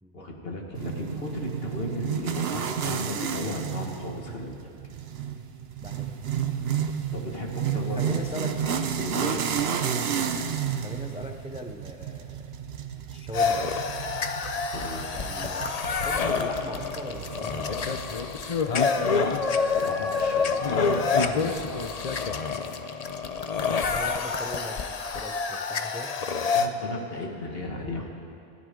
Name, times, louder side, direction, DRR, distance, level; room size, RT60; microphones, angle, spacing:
voice 1, 0.1-4.7 7.1-8.2 9.0-9.5 14.7-15.0 19.5-22.0 26.5-28.1, left 1 dB, 70° left, 0 dB, 2.0 m, -35 dB
sound 1, 0.7-18.1, right 7 dB, 80° right, 1.0 m, -32 dB
voice 2, 5.8-6.1 7.9-8.5 9.2-9.4 10.8-12.4 13.1-13.7 15.2-18.0 23.9-26.1, left 1 dB, 5° right, 5 dB, 0.6 m, -39 dB
sound 2, 13.3-26.7, left 5 dB, 45° left, 0.7 m, -27 dB
27.0 x 11.0 x 3.8 m, 2.6 s
omnidirectional pair, 1.0 m